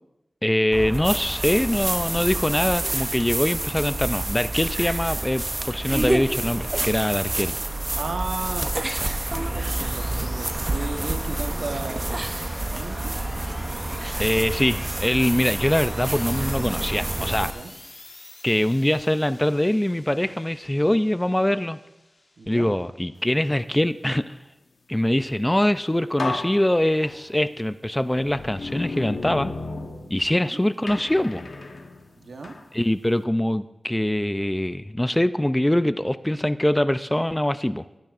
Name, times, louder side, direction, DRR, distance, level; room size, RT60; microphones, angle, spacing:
voice 1, 0.4-7.5 14.2-17.5 18.4-21.8 22.5-24.4 24.9-29.5 30.1-31.4 32.7-37.8, left 1 dB, 10° left, 13 dB, 0.3 m, -23 dB
sound 1, 0.7-17.5, right 2 dB, 30° right, 0.6 m, -28 dB
sound 2, 6.8-23.4, left 2 dB, 35° left, 1.1 m, -46 dB
voice 2, 7.9-13.1 17.5-17.8 22.4-22.7 30.3-30.6 32.2-32.5, right 3 dB, 85° right, 5 dB, 1.0 m, -35 dB
sound 3, 25.6-25.7 26.2-27.5 28.1-30.5 30.9-32.7, left 3 dB, 70° left, 0.9 m, -34 dB
17.5 x 9.1 x 2.5 m, 0.95 s
wide cardioid pair, 85°, 0 cm